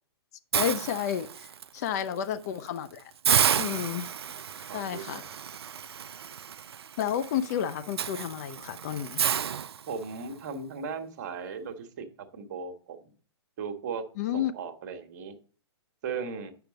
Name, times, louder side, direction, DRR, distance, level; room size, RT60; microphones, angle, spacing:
voice 1, 0.5-3.1 3.5-4.1 4.7-5.2 7.0-9.2 14.2-14.5, left 9 dB, 35° left, 0.5 m, -31 dB
Hiss, 0.5-1.6 2.1-2.3 2.7-2.8 3.2-10.3, right 8 dB, 65° right, 0.4 m, -31 dB
voice 2, 4.7-5.3 9.9-12.0 12.3-13.1 13.6-14.0 14.3-15.3 16.0-16.5, right 5 dB, 40° right, 1.3 m, -37 dB
8.9 x 5.8 x 5.2 m
figure-of-eight pair, 115°, 14 cm